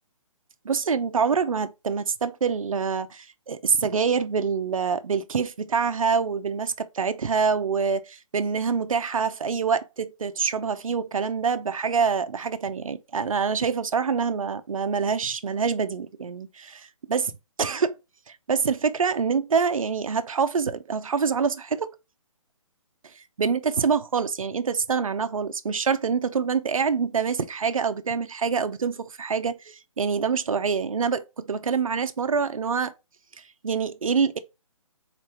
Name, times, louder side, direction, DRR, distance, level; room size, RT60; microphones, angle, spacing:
voice 1, 0.6-17.3 17.6-18.0 18.3-21.9 23.4-32.9 33.4-34.4, right 5 dB, 70° right, 0.6 m, -26 dB
4.0 x 3.3 x 2.8 m
figure-of-eight pair, 140°, 18 cm